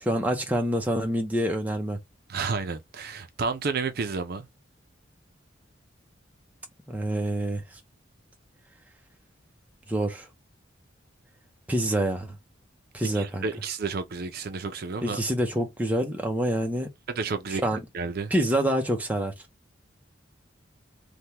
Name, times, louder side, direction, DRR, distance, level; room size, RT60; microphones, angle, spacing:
voice 1, 0.0-2.0 6.9-7.8 9.9-10.3 11.7-12.4 12.9-13.4 15.0-16.9 17.5-17.8 18.3-19.3, right 1 dB, 10° right, 0.6 m, -26 dB
voice 2, 2.3-4.5 13.1-15.2 17.1-17.6 17.9-18.3, right 4 dB, 55° right, 0.5 m, -31 dB
3.3 x 2.2 x 2.8 m
head